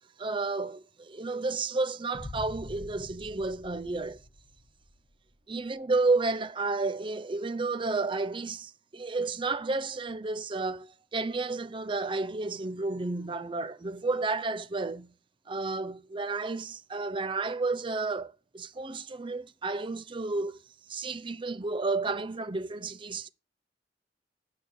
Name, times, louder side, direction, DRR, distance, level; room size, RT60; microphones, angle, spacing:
voice 1, 0.2-4.2 5.5-15.1 15.5-20.6 20.9-23.3, right 3 dB, 30° right, 0.6 m, -31 dB
Boom, 2.1-5.1, left 1 dB, 45° left, 1.3 m, -45 dB
9.3 x 6.4 x 7.5 m
head